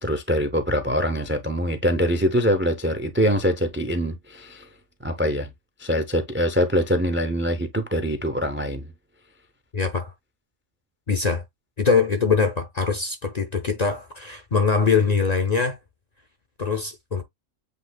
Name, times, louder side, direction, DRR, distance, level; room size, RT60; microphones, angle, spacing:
voice 1, 0.0-4.7 5.0-5.5 5.8-8.9, equal, 20° right, 0.3 m, -23 dB
voice 2, 9.7-10.1 11.1-11.4 11.8-15.8 16.6-17.2, left 5 dB, 45° left, 0.5 m, -22 dB
8.0 x 2.8 x 2.2 m
omnidirectional pair, 1.3 m